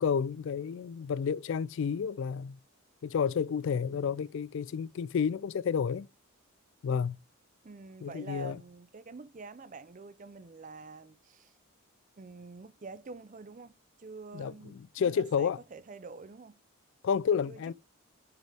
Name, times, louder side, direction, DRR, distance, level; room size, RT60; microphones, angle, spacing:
voice 1, 0.0-2.6 3.0-6.1 6.8-7.2 8.0-8.6 14.3-15.6 17.0-17.7, left 6 dB, 55° left, 0.3 m, -30 dB
voice 2, 3.7-4.1 7.6-11.5 12.2-16.6 17.5-17.7, right 4 dB, 35° right, 0.5 m, -47 dB
6.0 x 5.3 x 3.4 m
head